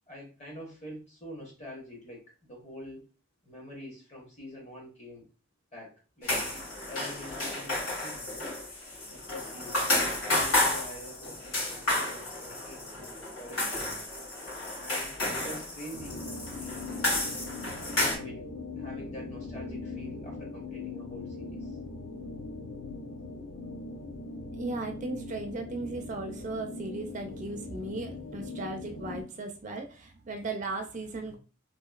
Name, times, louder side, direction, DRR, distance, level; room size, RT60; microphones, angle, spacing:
voice 1, 0.1-3.0 3.4-5.3 5.7-8.5 9.0-13.9 14.8-17.0 17.9-18.5 18.8-21.8, equal, 35° left, -1 dB, 1.0 m, -46 dB
sound 1, 6.2-18.2, left 1 dB, 85° left, 1.5 m, -31 dB
sound 2, 15.9-29.2, left 2 dB, 55° left, 0.5 m, -40 dB
voice 2, 24.5-31.4, right 2 dB, 35° right, 4 dB, 0.4 m, -37 dB
2.8 x 2.5 x 2.3 m, 0.35 s
head